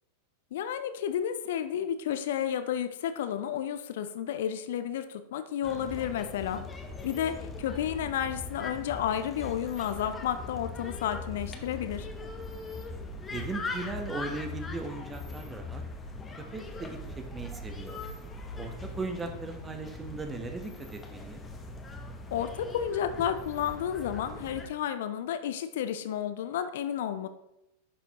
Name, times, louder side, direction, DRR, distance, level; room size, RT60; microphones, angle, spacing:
voice 1, 0.5-6.6 7.0-12.1 22.3-27.3, left 9 dB, 55° left, 10 dB, 0.5 m, -31 dB
sound 1, 5.6-24.7, left 3 dB, 15° left, 1.0 m, -40 dB
voice 2, 13.3-15.8 16.5-18.0 18.5-21.4, right 3 dB, 15° right, 5 dB, 1.0 m, -38 dB
11.0 x 6.1 x 3.0 m, 0.86 s
figure-of-eight pair, 90°, 0 cm